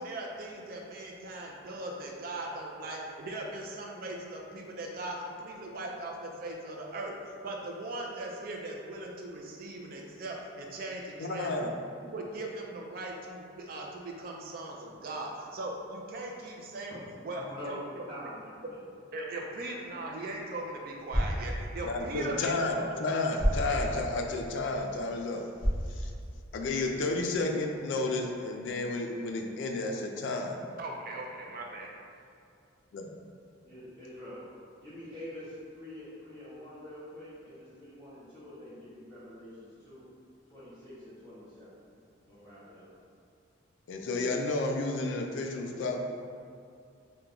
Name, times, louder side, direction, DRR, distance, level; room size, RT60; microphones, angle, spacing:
voice 1, 0.0-7.1 7.4-11.7 12.0-17.8 19.1-23.0 30.8-31.9, right 2 dB, 45° right, 0 dB, 0.4 m, -39 dB
voice 2, 11.2-11.7 21.8-25.4 25.9-26.1 26.5-30.6 32.9-33.1 43.9-46.0, left 2 dB, 65° left, 2 dB, 0.3 m, -31 dB
voice 3, 17.1-18.8 33.6-34.5 34.8-40.0 40.5-41.8 42.2-42.9, equal, 20° left, -14 dB, 1.2 m, -46 dB
sound 1, 19.9-26.8, equal, 15° right, 0.8 m, -35 dB
2.9 x 2.2 x 3.7 m, 2.4 s
head